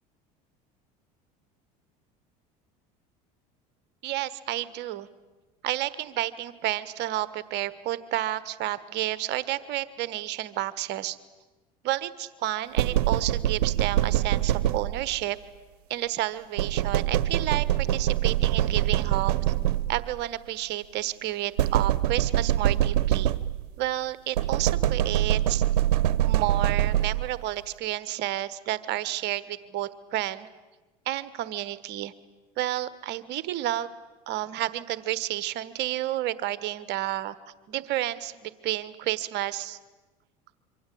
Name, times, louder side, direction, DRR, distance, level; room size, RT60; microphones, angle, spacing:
voice 1, 4.0-5.1 5.6-11.2 11.8-15.4 15.9-19.3 19.9-23.3 23.8-25.6 26.2-30.5 31.1-32.1 32.6-33.9 34.3-37.4 37.7-39.8, right 14 dB, 60° right, 16 dB, 1.3 m, -31 dB
sound 1, 12.8-15.2 16.6-20.2 21.6-23.8 24.4-27.4, right 12 dB, 85° right, 0.9 m, -24 dB
26.5 x 24.5 x 8.6 m, 1.2 s
hypercardioid pair, 85°, 20 cm